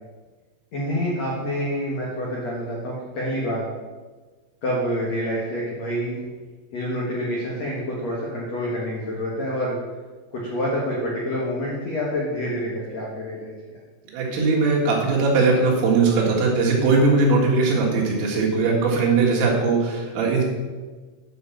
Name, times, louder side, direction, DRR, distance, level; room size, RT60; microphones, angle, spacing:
voice 1, 0.7-3.6 4.6-6.2 6.7-9.8 10.3-13.8, equal, 70° left, -4 dB, 1.6 m, -27 dB
voice 2, 14.1-20.4, right 3 dB, 70° right, -2 dB, 4.1 m, -20 dB
9.5 x 5.5 x 7.2 m, 1.3 s
omnidirectional pair, 5.7 m